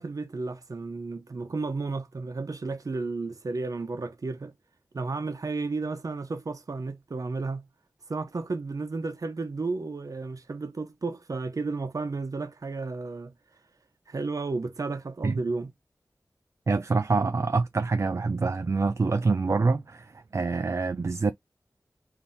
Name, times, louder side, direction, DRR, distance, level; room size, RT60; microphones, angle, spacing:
voice 1, 0.0-4.5 4.9-7.6 8.1-13.3 14.1-15.7, right 3 dB, 65° right, 0.8 m, -33 dB
voice 2, 16.7-21.3, right 4 dB, 50° right, 0.4 m, -26 dB
3.5 x 2.7 x 4.0 m
wide cardioid pair, 60°, 6 cm